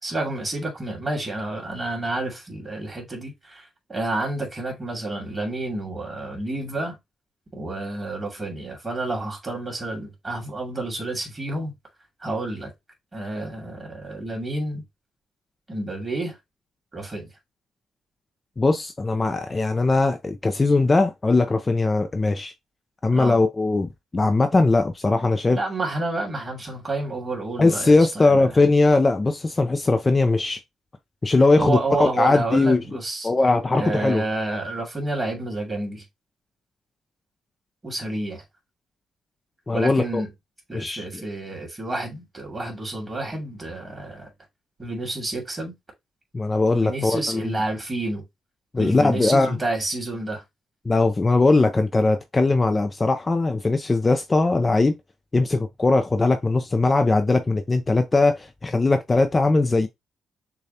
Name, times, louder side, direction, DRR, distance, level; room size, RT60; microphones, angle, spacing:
voice 1, 0.0-7.0 7.5-11.7 12.2-12.7 13.1-14.8 15.7-16.4 16.9-17.3 23.1-23.4 25.5-28.5 31.6-33.3 33.7-36.0 37.8-38.4 39.7-40.3 40.7-44.3 44.8-45.7 46.7-48.2 48.8-50.4, right 2 dB, 20° right, 2.5 m, -29 dB
voice 2, 18.6-22.5 23.0-25.6 27.6-30.6 31.2-32.8 33.2-34.2 39.7-40.2 40.7-41.0 46.3-47.5 48.7-49.6 50.9-55.0 55.3-59.9, left 3 dB, 25° left, 0.5 m, -20 dB
6.5 x 2.3 x 2.7 m
cardioid pair, 90°, 0 cm